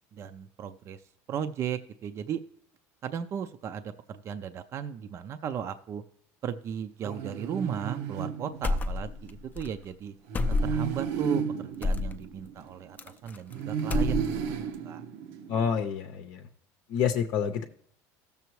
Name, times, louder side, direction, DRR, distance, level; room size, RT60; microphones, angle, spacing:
voice 1, 0.1-1.0 1.3-2.4 3.0-6.0 6.4-10.1 10.5-14.5 14.8-15.0, right 8 dB, 40° right, 10 dB, 0.5 m, -36 dB
sound 1, 7.0-9.1 10.3-13.0 13.5-15.8, right 7 dB, 85° right, 0.8 m, -33 dB
sound 2, 8.6-9.3 9.6-9.7 10.3-11.0 11.8-12.2 13.0-13.5 13.8-14.5, left 3 dB, 20° left, 0.5 m, -28 dB
voice 2, 15.5-16.4 16.9-17.6, left 7 dB, 60° left, 5 dB, 0.7 m, -28 dB
15.5 x 6.9 x 3.1 m, 0.67 s
cardioid pair, 135°, 8 cm